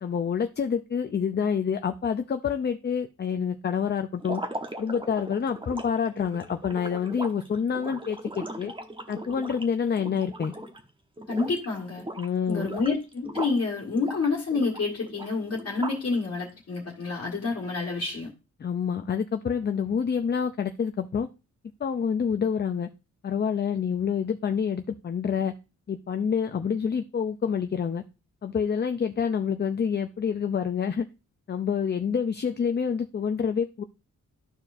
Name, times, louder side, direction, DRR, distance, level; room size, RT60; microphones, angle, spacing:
voice 1, 0.0-4.4 4.8-8.7 9.1-10.5 12.2-12.7 18.6-21.3 21.8-22.9 23.2-25.5 25.9-28.0 28.4-31.0 31.5-33.8, left 7 dB, 35° left, 7 dB, 0.5 m, -27 dB
sound 1, 4.2-10.9 11.2-11.7 12.0-13.6 14.0-16.2, right 1 dB, 15° right, 1.0 m, -38 dB
voice 2, 11.3-12.0 12.5-18.3, left 4 dB, 50° left, -4 dB, 1.7 m, -28 dB
12.5 x 4.5 x 2.6 m, 0.29 s
cardioid pair, 100°, 31 cm